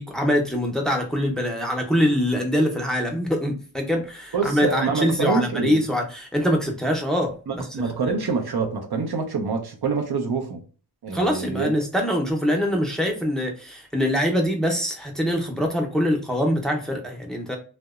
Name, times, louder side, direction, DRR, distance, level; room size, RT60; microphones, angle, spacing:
voice 1, 0.0-7.7 8.0-8.2 11.1-17.6, equal, ahead, 0.5 m, -24 dB
voice 2, 4.3-5.8 7.5-10.6 11.0-11.7, right 4 dB, 85° right, 0.6 m, -26 dB
2.8 x 2.1 x 2.3 m
wide cardioid pair, 50°, 38 cm